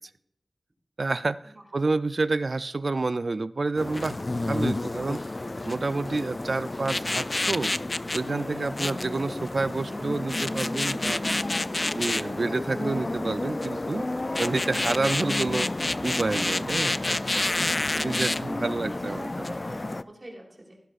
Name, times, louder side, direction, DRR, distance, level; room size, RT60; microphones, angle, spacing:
voice 1, 1.0-5.2 5.6-7.7 8.1-11.2 11.8-14.1 14.4-15.7 16.0-19.3, right 3 dB, 65° right, 16 dB, 0.4 m, -29 dB
sound 1, 3.8-20.0, left 2 dB, 40° left, 0.3 m, -29 dB
voice 2, 11.5-12.0 16.9-20.7, right 1 dB, 40° right, -1 dB, 3.5 m, -47 dB
16.0 x 11.0 x 2.5 m, 0.75 s
wide cardioid pair, 75°, 0 cm